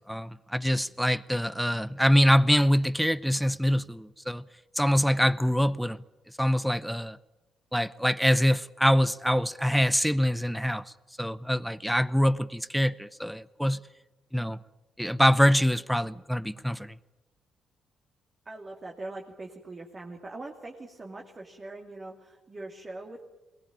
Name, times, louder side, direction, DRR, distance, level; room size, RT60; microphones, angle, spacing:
voice 1, 0.0-4.4 4.8-6.0 6.4-7.2 7.7-13.8 14.3-14.6 15.0-17.0, equal, ahead, 0.8 m, -24 dB
voice 2, 18.4-23.2, right 2 dB, 30° right, 2.7 m, -42 dB
22.5 x 19.0 x 8.9 m
cardioid pair, 90°, 0 cm